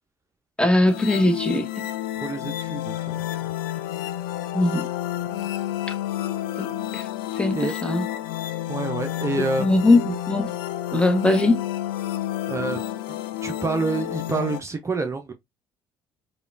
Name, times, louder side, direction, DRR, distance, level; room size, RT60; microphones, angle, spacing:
voice 1, 0.6-1.9 4.5-4.9 6.6-7.1 7.3-8.1 9.6-10.5 10.9-11.6, left 2 dB, 10° left, 1.0 m, -21 dB
sound 1, 0.9-14.6, left 13 dB, 75° left, 0.5 m, -30 dB
voice 2, 2.2-3.2 7.5-7.7 8.7-9.7 12.5-12.8 13.1-15.3, right 3 dB, 25° right, 0.6 m, -28 dB
4.9 x 2.2 x 2.4 m
figure-of-eight pair, 55°, 12 cm